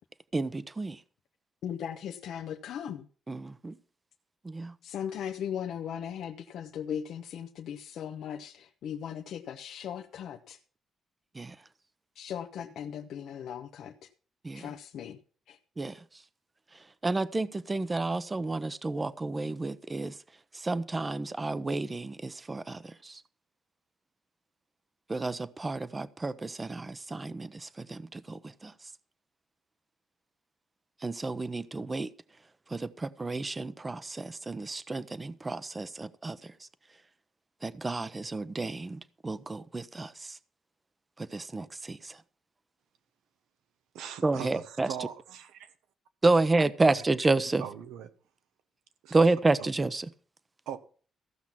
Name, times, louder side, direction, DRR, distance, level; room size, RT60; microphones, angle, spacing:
voice 1, 0.3-1.0 3.3-3.7 4.4-4.7 11.4-11.5 14.4-14.7 15.8-15.9 17.0-20.1 20.6-23.2 25.1-28.7 31.0-32.1 32.7-36.4 37.6-40.1 41.3-42.1 44.2-44.9 46.2-47.6 49.1-50.1, right 3 dB, 25° right, 0.8 m, -30 dB
voice 2, 1.6-3.1 4.8-10.6 12.1-14.1 14.5-15.2 15.5-15.6, left 9 dB, 80° left, 0.9 m, -38 dB
voice 3, 43.9-45.5 47.6-48.1 49.0-49.2 49.6-49.7 50.7-50.8, right 9 dB, 90° right, 1.2 m, -40 dB
15.0 x 6.0 x 7.2 m
cardioid pair, 70°, 0 cm